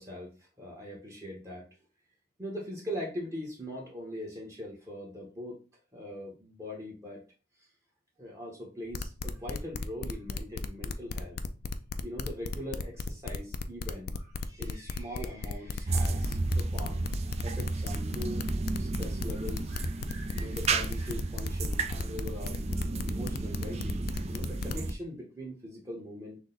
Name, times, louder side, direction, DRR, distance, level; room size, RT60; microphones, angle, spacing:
voice 1, 0.0-1.6 2.4-5.6 5.9-7.2 8.2-11.4 12.0-17.1 17.4-18.5 18.7-26.4, equal, 15° right, -3 dB, 1.0 m, -41 dB
sound 1, 8.9-24.9, left 4 dB, 55° left, 0.4 m, -36 dB
sound 2, 15.9-24.9, right 3 dB, 35° right, 0.4 m, -32 dB
6.2 x 2.2 x 3.9 m, 0.34 s
head